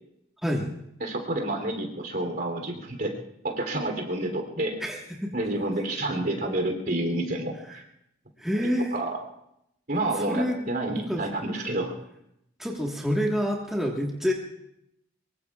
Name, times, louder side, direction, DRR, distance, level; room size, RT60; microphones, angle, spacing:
voice 1, 1.0-3.1 3.4-4.8 5.3-7.8 8.6-9.2 9.9-11.9, right 1 dB, 55° right, 3 dB, 3.2 m, -29 dB
voice 2, 4.8-5.3 8.4-9.0 10.2-10.7 11.0-11.2 12.6-14.3, equal, ahead, -2 dB, 1.5 m, -27 dB
23.5 x 23.0 x 2.4 m, 0.79 s
head